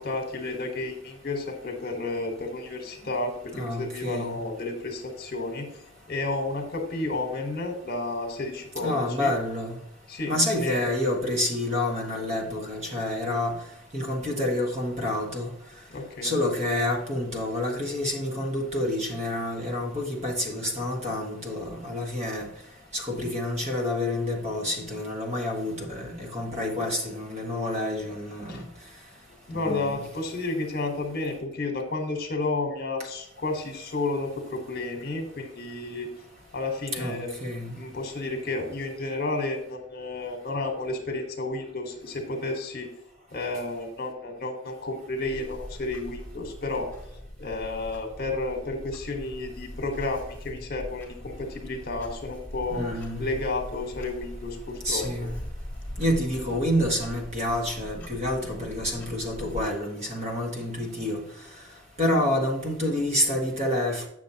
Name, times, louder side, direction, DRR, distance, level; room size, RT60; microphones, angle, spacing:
voice 1, 0.0-5.7 6.1-9.3 10.1-10.9 15.9-16.3 28.5-28.6 29.5-36.1 36.5-37.3 37.7-42.9 43.3-46.9 47.4-52.9 53.2-55.1, left 2 dB, 55° left, 4 dB, 1.4 m, -31 dB
voice 2, 3.5-4.4 8.8-9.7 10.2-13.5 13.9-15.5 16.2-22.5 22.9-28.6 29.5-29.9 37.0-37.7 52.7-53.2 54.8-55.3 56.0-61.2 62.0-64.1, left 1 dB, 35° right, 0 dB, 1.6 m, -28 dB
Clock, 45.2-59.7, left 1 dB, 10° left, 1.4 m, -41 dB
8.3 x 6.3 x 2.9 m, 0.81 s
head